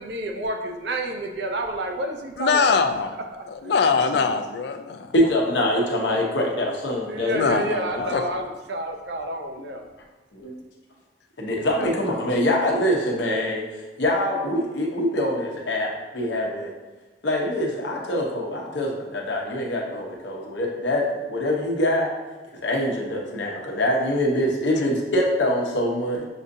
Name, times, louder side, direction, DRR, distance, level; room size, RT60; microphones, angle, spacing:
voice 1, 0.0-3.7 7.1-9.9, right 1 dB, 70° right, 3 dB, 0.5 m, -30 dB
voice 2, 2.4-3.1 3.5-5.1 7.3-8.2 11.8-11.9, left 5 dB, 65° left, 8 dB, 0.3 m, -23 dB
voice 3, 5.1-8.1 10.3-10.6 11.4-13.7 14.0-16.7 17.2-22.1 22.6-26.3, left 1 dB, 85° left, -1 dB, 0.8 m, -24 dB
6.1 x 2.6 x 2.6 m, 1.2 s
head